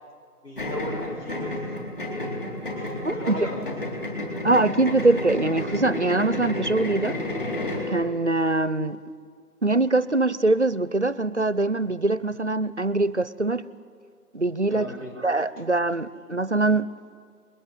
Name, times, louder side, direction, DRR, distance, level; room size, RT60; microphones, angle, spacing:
voice 1, 0.4-1.9 2.7-4.0 14.7-15.1, left 1 dB, 80° left, 7.0 m, -37 dB
sound 1, 0.6-7.9, left 1 dB, 35° left, 4.1 m, -31 dB
voice 2, 3.0-3.5 4.4-7.2 7.9-9.0 9.6-13.7 14.3-14.9 15.2-16.9, right 2 dB, 45° right, 0.7 m, -23 dB
28.0 x 21.5 x 8.2 m
figure-of-eight pair, 180°, 47 cm